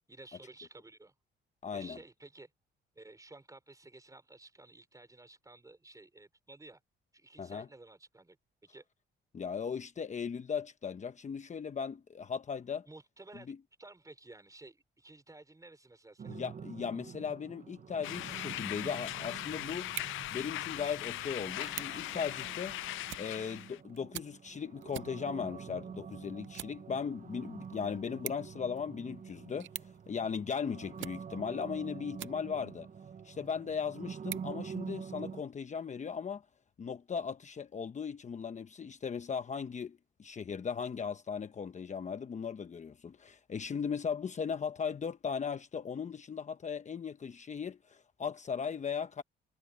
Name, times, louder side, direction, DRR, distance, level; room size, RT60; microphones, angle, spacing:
voice 1, 0.1-1.1 1.7-2.5 2.9-6.8 7.1-8.4 8.7-8.9 12.9-13.5 13.8-16.4, right 2 dB, 15° right, 5.3 m, -53 dB
voice 2, 1.6-2.0 7.4-7.7 9.3-12.9 13.5-13.6 16.3-19.9 20.3-22.7 23.2-32.9 33.2-36.4 36.8-49.2, left 6 dB, 35° left, 1.0 m, -37 dB
sound 1, 16.2-35.4, right 6 dB, 40° right, 1.1 m, -47 dB
sound 2, 18.0-23.8, left 16 dB, 80° left, 0.5 m, -40 dB
sound 3, 19.8-32.8 33.3-35.4, right 14 dB, 75° right, 0.7 m, -49 dB
cardioid pair, 90°, 20 cm